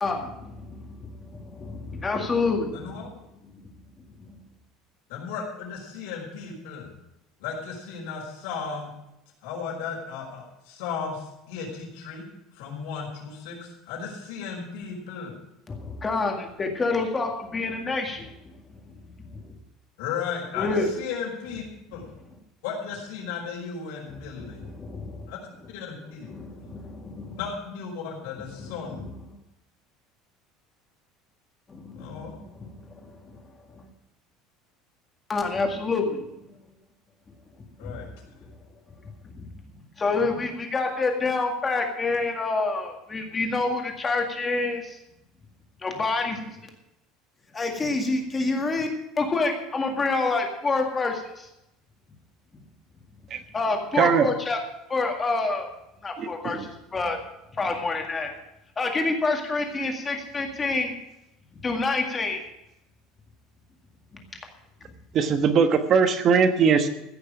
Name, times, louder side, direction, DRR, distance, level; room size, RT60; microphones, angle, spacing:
voice 1, 0.0-3.0 15.7-18.3 19.2-19.4 20.6-20.9 24.1-25.3 26.3-27.4 28.6-29.1 31.7-33.4 33.8-33.9 35.3-36.3 37.8-38.1 39.3-39.5 40.0-45.0 45.8-46.6 47.5-48.9 49.2-51.5 53.5-54.6 54.9-55.7 56.0-56.6 56.9-57.2 57.6-58.3 58.8-61.0 61.6-62.4, left 3 dB, 15° left, 3 dB, 2.0 m, -28 dB
voice 2, 2.7-3.1 5.1-6.9 7.4-8.9 9.4-12.3 12.5-15.3 20.0-21.6 21.9-22.1 22.6-24.7 25.3-25.4 25.7-26.7 27.4-29.0 32.0-32.3 37.8-38.1 40.1-40.4, left 6 dB, 80° left, 0 dB, 5.3 m, -35 dB
voice 3, 53.9-54.3 56.2-56.7 65.1-66.9, right 6 dB, 35° right, 9 dB, 1.2 m, -21 dB
15.5 x 6.6 x 8.8 m, 0.88 s
cardioid pair, 170°, 0 cm